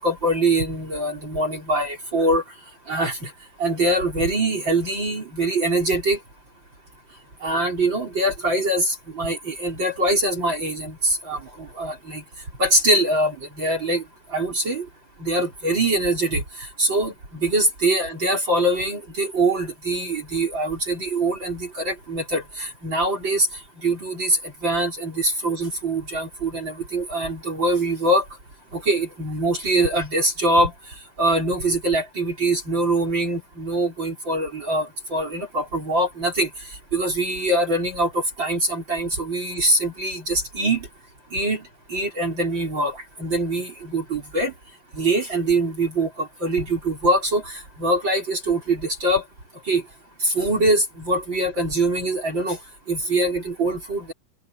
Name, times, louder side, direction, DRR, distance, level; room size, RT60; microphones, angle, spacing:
voice 1, 0.0-2.4 2.9-3.3 3.6-6.2 7.4-12.2 12.6-14.0 14.3-14.9 15.2-16.4 16.8-23.5 23.8-28.2 28.7-30.7 31.2-36.5 36.9-40.9 41.3-41.6 41.9-44.5 44.9-49.2 49.7-49.8 50.2-52.6 52.9-54.1, right 1 dB, 25° right, 4.5 m, -23 dB
omnidirectional pair, 5.0 m